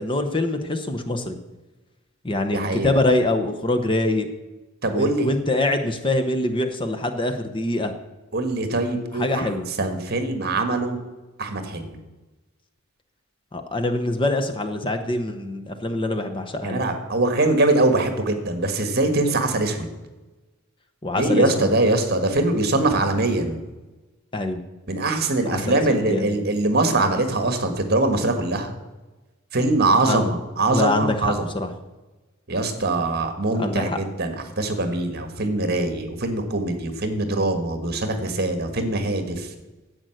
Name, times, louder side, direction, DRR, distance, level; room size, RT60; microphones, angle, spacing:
voice 1, 0.0-1.4 2.2-4.3 4.9-7.9 9.1-9.7 13.5-16.8 21.0-21.7 24.3-24.6 25.4-26.4 30.0-30.3 30.7-31.7 33.5-34.0, left 2 dB, 25° left, 6 dB, 0.9 m, -24 dB
voice 2, 2.5-2.9 4.8-5.3 8.3-9.5 9.8-11.0 11.4-12.0 16.6-19.9 21.2-23.6 24.9-28.7 29.5-31.5 32.5-39.5, right 2 dB, 50° right, 7 dB, 1.6 m, -22 dB
10.5 x 7.9 x 7.8 m, 1.1 s
head